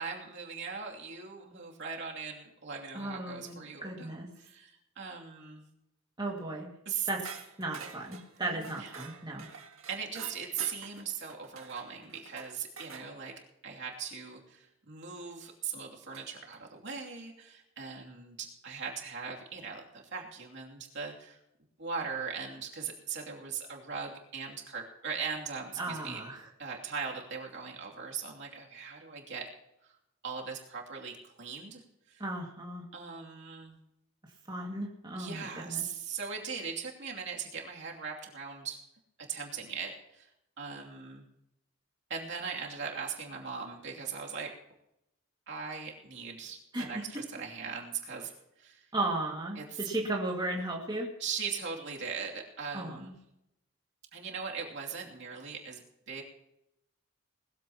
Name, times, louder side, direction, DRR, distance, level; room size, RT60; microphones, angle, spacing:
voice 1, 0.0-5.7 6.8-7.1 8.4-8.9 9.4-9.5 9.9-13.3 13.6-21.4 21.8-26.2 26.6-29.5 29.8-30.0 30.2-32.2 32.9-33.8 35.1-38.8 39.2-40.3 40.6-41.2 42.1-44.5 45.5-48.3 48.6-48.9 49.5-49.9 51.2-53.2 54.1-56.2, right 6 dB, 60° right, -1 dB, 2.7 m, -39 dB
voice 2, 2.9-3.6 3.8-4.3 6.2-6.7 7.1-7.2 7.6-9.5 25.8-26.5 32.2-32.9 34.5-35.8 46.7-47.2 48.9-51.1 52.7-53.1, right 2 dB, 20° right, -1 dB, 2.1 m, -35 dB
sound 1, 7.2-13.1 15.1-15.2 16.1-16.6, right 6 dB, 75° right, 2.0 m, -48 dB
20.5 x 14.5 x 3.0 m, 0.83 s
head